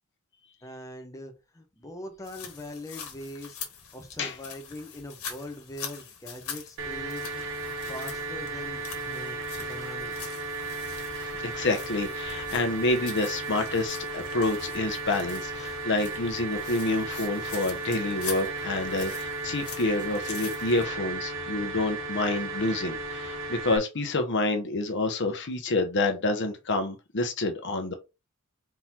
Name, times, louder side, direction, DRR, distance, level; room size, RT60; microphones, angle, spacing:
voice 1, 0.6-3.6 3.9-7.4 7.9-9.4 9.6-10.4 15.6-15.8, left 1 dB, 15° left, 0.8 m, -42 dB
sound 1, 2.2-20.8, left 7 dB, 75° left, 1.5 m, -44 dB
sound 2, 6.8-23.8, right 3 dB, 60° right, 0.8 m, -35 dB
voice 2, 11.2-27.9, left 2 dB, 55° left, 0.9 m, -28 dB
4.4 x 3.9 x 2.8 m
head